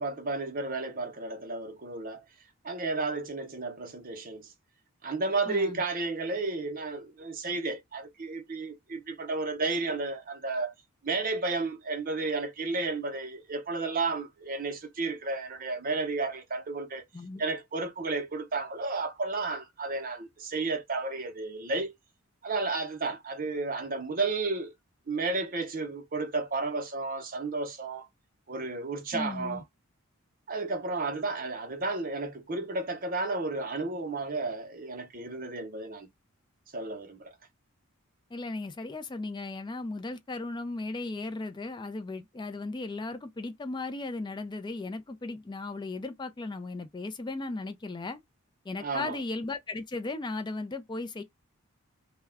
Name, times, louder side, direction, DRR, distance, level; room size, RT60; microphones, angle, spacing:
voice 1, 0.0-2.2 2.6-4.5 5.0-10.7 11.0-17.0 17.4-21.9 22.4-24.7 25.1-28.1 28.5-29.6 30.5-36.1 36.7-37.3 48.8-49.2, right 3 dB, 40° right, 0.6 m, -32 dB
voice 2, 5.4-5.8 17.1-17.4 29.1-29.6 38.3-48.2 48.6-51.2, left 2 dB, 20° left, 0.3 m, -36 dB
2.3 x 2.0 x 3.4 m
head